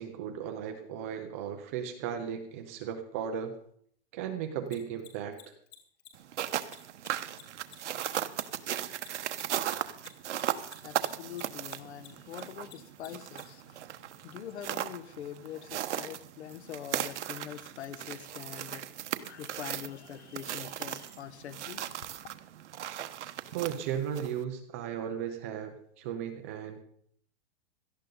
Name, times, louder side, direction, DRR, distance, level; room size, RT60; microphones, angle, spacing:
voice 1, 0.0-3.5 4.1-5.4 7.8-7.9 23.5-26.8, right 8 dB, 15° right, 0.4 m, -36 dB
Mechanisms, 4.7-11.4 11.7-13.4, left 18 dB, 40° left, 3.5 m, -50 dB
sound 1, 6.2-24.4, right 11 dB, 80° right, 1.1 m, -37 dB
voice 2, 10.1-13.8 14.2-22.4, left 10 dB, 70° left, 1.2 m, -44 dB
17.5 x 13.5 x 3.8 m
supercardioid pair, 175°, 34 cm